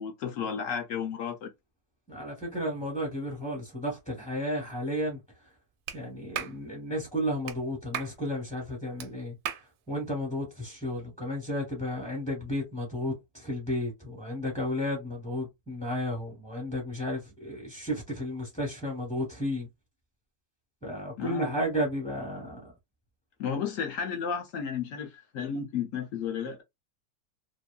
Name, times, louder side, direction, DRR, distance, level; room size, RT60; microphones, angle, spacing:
voice 1, 0.0-1.5 21.2-21.6 23.4-26.6, left 7 dB, 65° left, 0.8 m, -33 dB
voice 2, 2.1-5.2 5.9-9.4 9.9-19.7 20.8-22.7, equal, 5° left, 0.6 m, -33 dB
Clapping, 5.9-6.0 6.3-6.6 7.5-7.6 7.9-8.2 9.0-9.1 9.5-9.7, right 9 dB, 75° right, 1.1 m, -35 dB
2.9 x 2.5 x 2.3 m
omnidirectional pair, 1.8 m